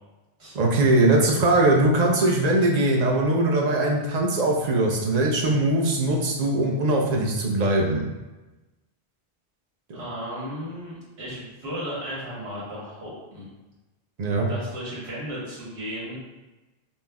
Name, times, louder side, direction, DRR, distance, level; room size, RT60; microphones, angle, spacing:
voice 1, 0.5-8.0 9.9-10.0 14.2-14.5, right 2 dB, 50° right, -1 dB, 0.6 m, -21 dB
voice 2, 9.9-13.5 14.4-16.2, equal, 85° right, -7 dB, 1.5 m, -35 dB
5.3 x 2.0 x 2.3 m, 1.1 s
omnidirectional pair, 1.1 m